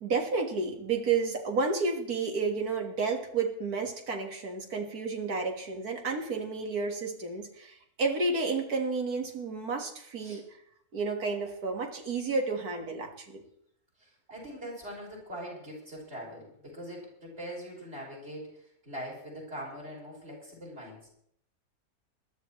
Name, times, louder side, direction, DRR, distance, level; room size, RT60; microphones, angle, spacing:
voice 1, 0.0-10.6 10.9-13.4, right 4 dB, 90° right, 3 dB, 2.2 m, -31 dB
voice 2, 14.0-21.1, equal, 45° right, -4 dB, 6.0 m, -42 dB
21.0 x 12.5 x 3.2 m, 0.70 s
omnidirectional pair, 1.6 m